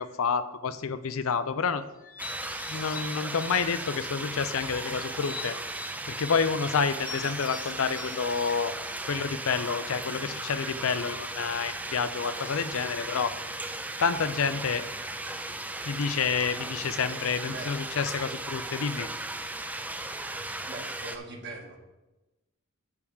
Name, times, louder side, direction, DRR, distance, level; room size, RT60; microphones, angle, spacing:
voice 1, 0.0-1.8 2.7-5.6 6.2-8.7 9.1-13.3 14.0-14.8 15.9-19.1, left 5 dB, 70° left, 12 dB, 0.5 m, -29 dB
sound 1, 2.0-4.1 4.5-6.4 7.0-9.5, left 4 dB, 45° left, 0.9 m, -44 dB
sound 2, 2.2-21.2, right 2 dB, 5° right, 0.4 m, -36 dB
voice 2, 20.7-21.8, right 2 dB, 55° right, 1 dB, 1.5 m, -41 dB
9.5 x 3.6 x 7.1 m, 1.0 s
head